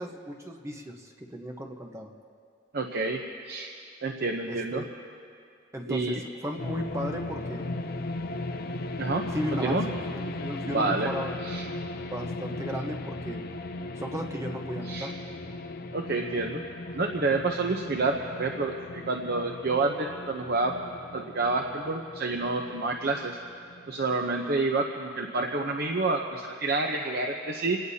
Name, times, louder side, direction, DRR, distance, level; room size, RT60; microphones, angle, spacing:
voice 1, 0.0-2.1 4.5-4.9 5.7-7.7 9.3-11.3 12.1-13.4 14.0-15.1, equal, 15° right, 1 dB, 1.0 m, -35 dB
voice 2, 2.7-3.7 4.0-4.8 5.9-6.2 9.0-9.2 9.6-9.8 10.6-11.1 11.4-11.7 14.8-15.1 15.9-16.6 16.9-20.8 21.1-23.4 23.9-27.8, right 3 dB, 55° right, 2 dB, 0.8 m, -28 dB
sound 1, 6.6-24.3, left 2 dB, 50° left, 0.6 m, -37 dB
28.0 x 18.0 x 2.8 m, 2.3 s
head